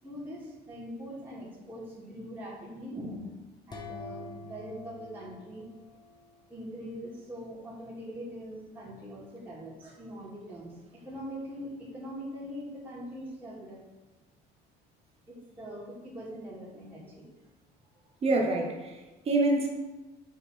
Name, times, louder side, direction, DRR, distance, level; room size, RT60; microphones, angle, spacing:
voice 1, 0.0-3.3 3.7-5.7 6.5-13.8 15.3-17.3, equal, 10° right, -9 dB, 2.3 m, -42 dB
sound 1, 3.7-6.5, left 3 dB, 25° left, 1.1 m, -46 dB
voice 2, 18.2-19.7, right 2 dB, 35° right, 1 dB, 1.3 m, -27 dB
6.9 x 3.9 x 5.8 m, 1.1 s
cardioid pair, 140°, 17 cm